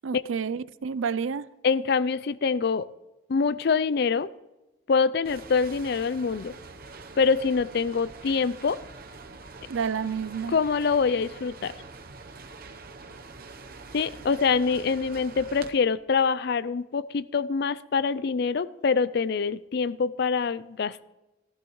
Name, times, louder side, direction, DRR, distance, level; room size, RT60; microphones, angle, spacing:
voice 1, 0.0-1.5 9.7-10.5, right 6 dB, 80° right, 18 dB, 0.4 m, -29 dB
voice 2, 1.6-2.9 3.3-4.3 4.9-6.5 7.2-8.8 10.5-11.7 13.9-21.1, left 5 dB, 55° left, 17 dB, 0.4 m, -25 dB
sound 1, 5.2-15.7, right 3 dB, 50° right, 0.8 m, -45 dB
15.0 x 14.5 x 3.1 m, 1.0 s
head